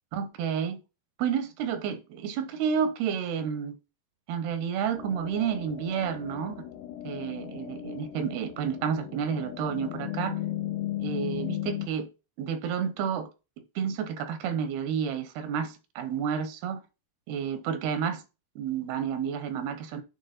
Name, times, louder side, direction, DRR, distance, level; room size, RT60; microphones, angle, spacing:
voice 1, 0.1-0.8 1.2-3.8 4.3-6.6 7.0-10.4 11.0-12.1 12.4-13.3 13.8-16.8 17.3-18.2 18.6-20.0, right 7 dB, 90° right, 2.9 m, -30 dB
sound 1, 5.0-11.9, left 13 dB, 90° left, 2.7 m, -36 dB
8.9 x 3.6 x 4.2 m
omnidirectional pair, 4.4 m